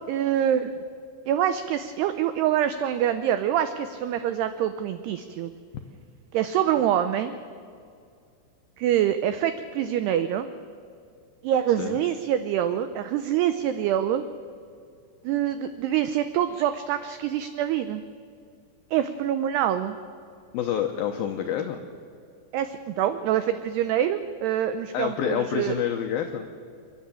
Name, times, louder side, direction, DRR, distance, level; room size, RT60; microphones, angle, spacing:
voice 1, 0.1-0.7 1.3-5.5 6.3-7.4 8.8-10.5 11.4-14.2 15.2-18.0 18.9-20.0 22.5-25.7, right 10 dB, 85° right, 10 dB, 2.3 m, -25 dB
voice 2, 20.5-21.8 24.9-26.5, left 9 dB, 85° left, 4 dB, 2.1 m, -27 dB
29.0 x 11.0 x 9.0 m, 2.3 s
omnidirectional pair, 5.6 m